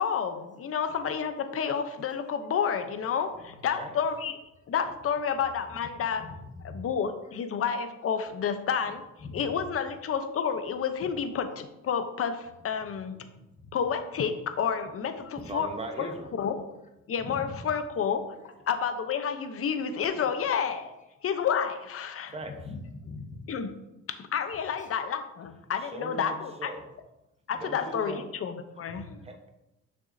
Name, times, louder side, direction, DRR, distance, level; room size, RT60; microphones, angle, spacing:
voice 1, 0.0-4.4 4.7-6.2 6.6-9.0 9.3-13.2 13.7-15.7 16.0-16.1 16.4-16.6 17.1-20.9 21.2-22.3 23.5-23.7 24.1-26.7 27.5-29.2, left 7 dB, 50° left, 8 dB, 0.7 m, -30 dB
voice 2, 6.2-6.8 9.2-9.4 13.6-13.7 17.2-17.5 22.4-23.5 24.8-24.9 28.9-29.0, left 3 dB, 25° left, 4 dB, 1.1 m, -42 dB
voice 3, 15.4-16.3 22.3-22.6 25.8-26.9 27.5-28.3 29.2-29.5, right 2 dB, 20° right, 5 dB, 1.0 m, -39 dB
6.4 x 6.2 x 2.7 m, 0.93 s
cardioid pair, 90°, 30 cm